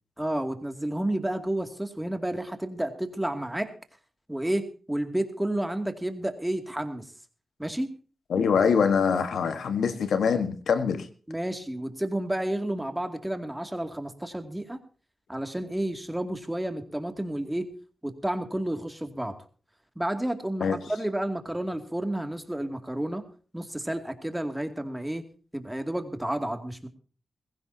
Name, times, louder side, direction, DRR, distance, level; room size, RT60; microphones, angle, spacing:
voice 1, 0.2-3.7 4.3-7.1 7.6-7.9 11.3-14.8 15.3-17.7 18.0-19.3 20.0-23.2 23.5-25.2 25.5-26.9, right 1 dB, 10° right, 2.4 m, -31 dB
voice 2, 8.3-11.1 20.6-20.8, left 6 dB, 85° left, 1.4 m, -24 dB
21.5 x 15.5 x 2.8 m
cardioid pair, 70°, 0 cm